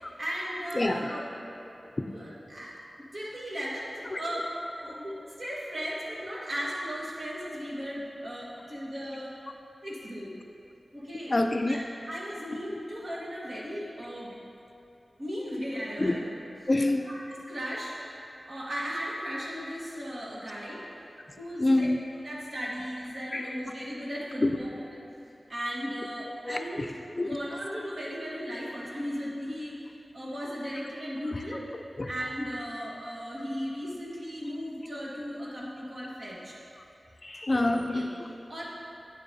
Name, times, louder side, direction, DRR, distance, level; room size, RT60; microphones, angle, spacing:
voice 1, 0.2-1.2 2.1-2.8 3.1-4.5 4.8-9.3 9.8-10.3 10.9-11.3 11.7-11.8 12.1-14.4 15.2-16.2 17.1-20.8 21.4-21.9 22.2-24.7 25.5-27.0 27.2-29.7 30.1-31.6 32.1-36.5 37.6-38.6, equal, 55° right, -5 dB, 1.5 m, -36 dB
voice 2, 11.3-11.8 16.0-16.2 16.7-17.1 21.6-22.0 23.3-23.6 24.4-24.6 26.4-26.9 27.2-27.3 31.3-31.4 32.0-32.1 36.8-36.9 37.2-38.1, left 2 dB, 40° left, 5 dB, 0.4 m, -27 dB
8.8 x 6.8 x 2.8 m, 2.8 s
wide cardioid pair, 60°, 0 cm